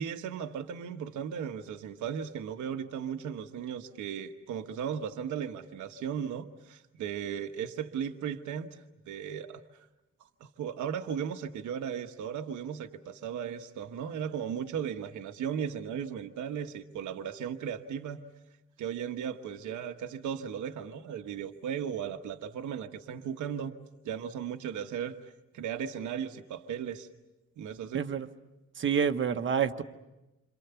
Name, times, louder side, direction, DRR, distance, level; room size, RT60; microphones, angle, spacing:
voice 1, 0.0-8.8 9.1-9.6 10.4-18.2 18.8-23.7 24.0-27.1 27.6-28.1, right 8 dB, 85° right, 6 dB, 1.3 m, -36 dB
voice 2, 27.9-28.3 28.8-29.8, right 7 dB, 40° right, 7 dB, 1.1 m, -28 dB
28.5 x 26.5 x 6.9 m, 0.98 s
cardioid pair, 150°, 29 cm